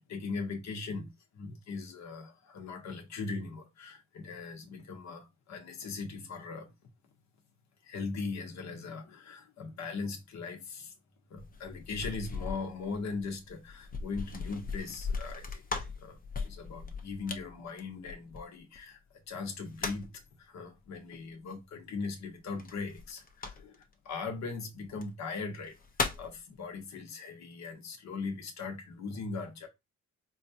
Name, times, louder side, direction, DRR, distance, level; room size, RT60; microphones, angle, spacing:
voice 1, 0.1-1.1 1.3-6.7 7.8-10.9 11.3-15.6 16.0-16.2 16.4-19.0 19.3-25.8 26.2-29.7, left 4 dB, 65° left, 1.2 m, -39 dB
sound 1, 11.4-18.8 19.4-20.2 22.6-23.9 24.9-25.0 25.5-26.4, left 4 dB, 30° left, 0.8 m, -38 dB
4.4 x 2.4 x 2.8 m
cardioid pair, 90°, 30 cm